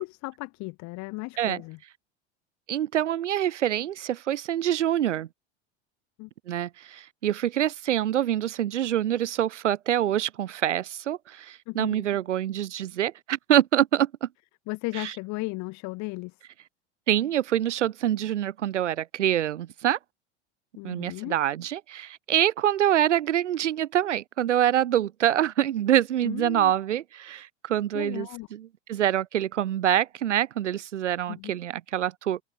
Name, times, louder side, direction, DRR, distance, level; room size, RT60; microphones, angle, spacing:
voice 1, 0.0-1.8 6.2-6.3 11.7-12.1 14.7-16.3 20.8-21.4 26.2-26.7 27.9-28.5 31.3-31.5, left 24 dB, 55° left, 2.6 m, -35 dB
voice 2, 2.7-5.3 6.5-14.3 14.9-15.1 17.1-20.0 20.8-32.4, right 11 dB, 80° right, 1.0 m, -25 dB
hypercardioid pair, 85°, 35 cm